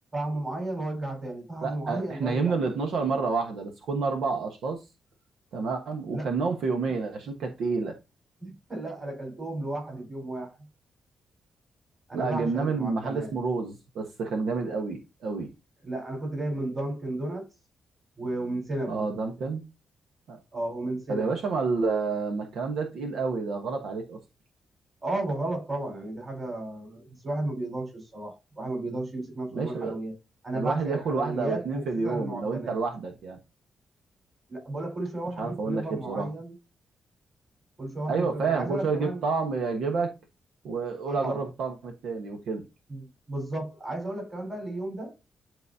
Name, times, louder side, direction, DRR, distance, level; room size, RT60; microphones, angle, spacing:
voice 1, 0.1-2.6 6.1-6.3 8.4-10.6 12.1-13.3 15.8-17.5 18.2-19.1 20.5-21.3 25.0-30.1 30.4-32.8 34.5-36.5 37.8-39.3 41.1-41.4 42.9-45.1, right 2 dB, 30° right, 4.5 m, -33 dB
voice 2, 1.6-4.8 5.5-7.9 12.1-15.5 18.9-19.6 20.3-20.4 21.1-24.2 29.5-30.0 30.5-33.4 35.4-36.3 38.1-40.1 40.6-42.6, right 4 dB, 80° right, 1.2 m, -29 dB
10.5 x 4.1 x 2.7 m
cardioid pair, 120°, 0 cm